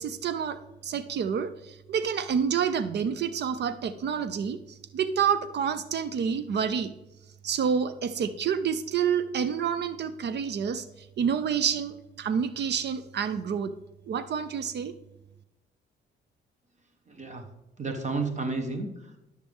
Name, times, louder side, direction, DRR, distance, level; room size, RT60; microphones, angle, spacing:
voice 1, 0.0-4.6 4.9-6.9 7.4-10.8 11.2-13.7 14.1-14.9, right 7 dB, 60° right, 13 dB, 0.6 m, -28 dB
voice 2, 17.1-17.5 17.8-19.2, right 3 dB, 35° right, 5 dB, 1.2 m, -32 dB
11.5 x 6.5 x 3.6 m, 0.92 s
cardioid pair, 90°, 20 cm